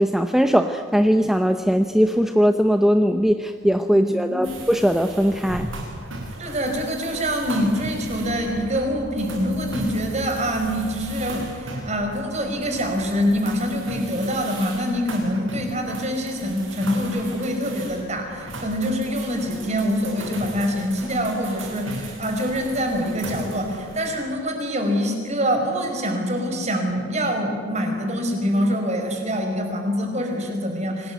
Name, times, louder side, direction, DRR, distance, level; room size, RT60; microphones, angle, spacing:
voice 1, 0.0-5.7, equal, ahead, 7 dB, 0.7 m, -19 dB
voice 2, 3.9-4.4 6.4-31.1, equal, 35° right, 3 dB, 5.3 m, -25 dB
sound 1, 4.4-24.1, right 2 dB, 75° right, 5.8 m, -37 dB
26.0 x 19.5 x 9.4 m, 2.3 s
head